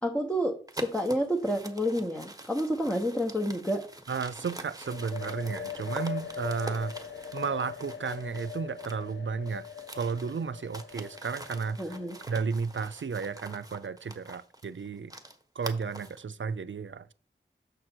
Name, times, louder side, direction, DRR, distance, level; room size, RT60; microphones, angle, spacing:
voice 1, 0.0-3.9 11.8-12.2, equal, 5° left, 0.9 m, -29 dB
sound 1, 0.7-9.1 9.4-16.2, right 1 dB, 15° right, 1.1 m, -45 dB
voice 2, 4.1-6.9 7.3-9.6 9.9-11.8 12.3-15.1 15.6-17.1, right 5 dB, 65° right, 0.4 m, -33 dB
sound 2, 4.8-12.5, left 8 dB, 60° left, 0.7 m, -41 dB
6.7 x 6.3 x 4.4 m
wide cardioid pair, 45°, 21 cm